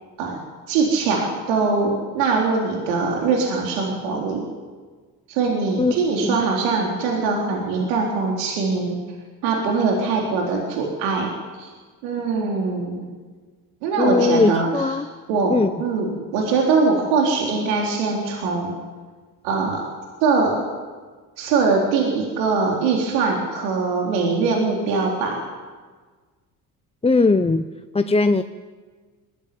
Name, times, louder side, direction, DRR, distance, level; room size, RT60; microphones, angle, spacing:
voice 1, 0.7-4.5 5.3-9.0 9.4-11.7 12.0-13.0 13.8-15.0 15.3-18.7 19.4-19.8 20.2-20.6 21.4-25.4, right 4 dB, 80° right, -1 dB, 4.1 m, -22 dB
voice 2, 14.0-15.1 15.5-15.7 27.0-27.6 27.9-28.4, left 3 dB, 15° left, 9 dB, 0.8 m, -19 dB
20.0 x 15.5 x 9.3 m, 1.4 s
hypercardioid pair, 65°, 46 cm